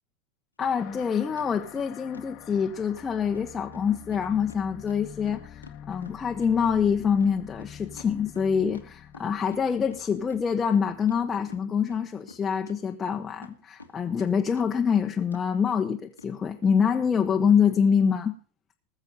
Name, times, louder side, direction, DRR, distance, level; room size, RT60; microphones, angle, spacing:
sound 1, 0.6-0.7 1.0-2.7 3.0-3.1 3.3-3.5 3.7-3.8 4.1-6.5 6.8-9.6 9.9-10.0 10.3-11.2 11.5-12.4 12.7-14.3 14.6-15.0 15.3-15.4 15.7-15.8 16.2-16.3 16.6-16.8, left 3 dB, 85° left, 1.4 m, -48 dB
voice 1, 0.6-18.3, left 7 dB, 20° left, 0.9 m, -25 dB
sound 2, 0.8-11.7, left 9 dB, 40° left, 1.0 m, -47 dB
19.5 x 7.0 x 5.5 m
figure-of-eight pair, 90°, 0 cm